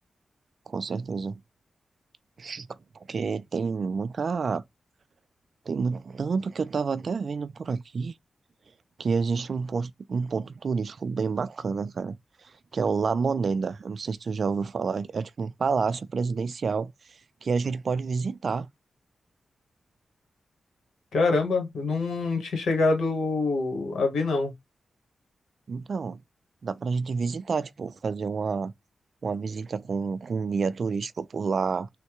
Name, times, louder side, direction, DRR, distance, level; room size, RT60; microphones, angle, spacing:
voice 1, 0.7-1.4 2.4-2.8 3.1-4.6 5.7-8.1 9.0-16.9 17.4-18.7 25.7-26.2 26.6-28.7 29.2-31.9, right 5 dB, 65° right, 0.3 m, -29 dB
voice 2, 21.1-24.5, left 3 dB, 85° left, 1.2 m, -25 dB
3.2 x 2.2 x 2.9 m
cardioid pair, 55°, 0 cm